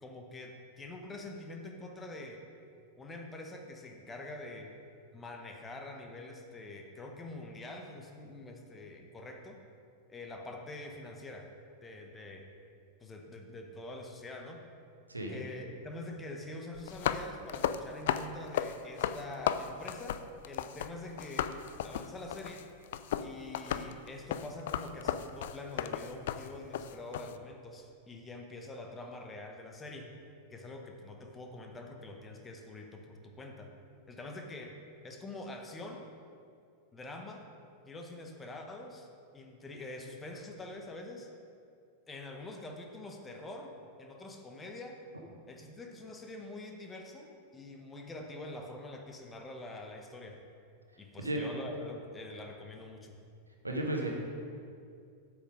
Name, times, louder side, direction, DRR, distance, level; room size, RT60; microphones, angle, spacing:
voice 1, 0.0-2.4 3.0-4.7 5.1-9.6 10.1-11.5 11.8-12.5 13.0-14.6 15.3-22.7 23.2-30.1 30.5-33.7 34.1-34.8 35.0-36.1 36.9-37.4 37.8-39.1 39.3-41.3 42.1-43.7 44.0-45.0 45.5-50.4 51.0-53.1, left 2 dB, 15° left, 3 dB, 0.9 m, -45 dB
voice 2, 15.1-15.4 51.2-51.5 53.6-54.1, right 1 dB, 80° right, 1 dB, 1.2 m, -33 dB
sound 1, 16.8-20.9 21.2-27.4, left 10 dB, 55° left, 0.3 m, -35 dB
8.2 x 6.0 x 5.1 m, 2.4 s
figure-of-eight pair, 90°, 0 cm